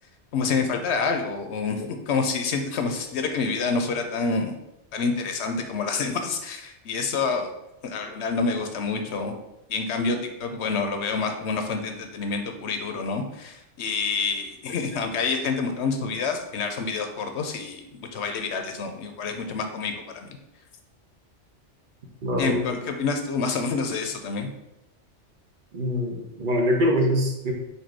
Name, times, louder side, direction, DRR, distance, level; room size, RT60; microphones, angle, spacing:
voice 1, 0.3-4.6 4.9-7.5 7.8-9.4 9.7-20.3 22.4-24.5, left 4 dB, 70° left, 5 dB, 0.9 m, -27 dB
voice 2, 22.2-22.6 25.7-27.5, equal, 45° right, 0 dB, 1.0 m, -24 dB
4.3 x 2.6 x 4.5 m, 0.87 s
omnidirectional pair, 1.2 m